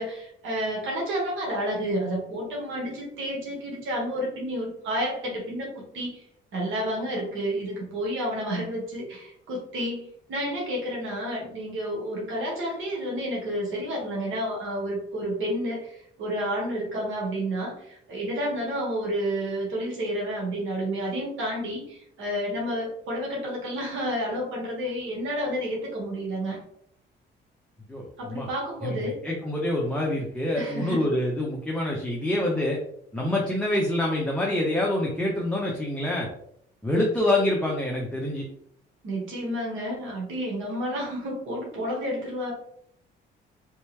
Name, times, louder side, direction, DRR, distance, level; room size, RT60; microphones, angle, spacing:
voice 1, 0.0-6.2 6.5-26.6 28.2-29.2 30.6-31.1 39.0-42.5, equal, 80° right, -2 dB, 1.5 m, -30 dB
voice 2, 27.9-28.5 28.8-29.0 29.2-32.8 33.1-36.3 36.8-38.4, left 1 dB, 5° left, -3 dB, 0.8 m, -26 dB
3.4 x 3.0 x 3.2 m, 0.70 s
cardioid pair, 90°, 20 cm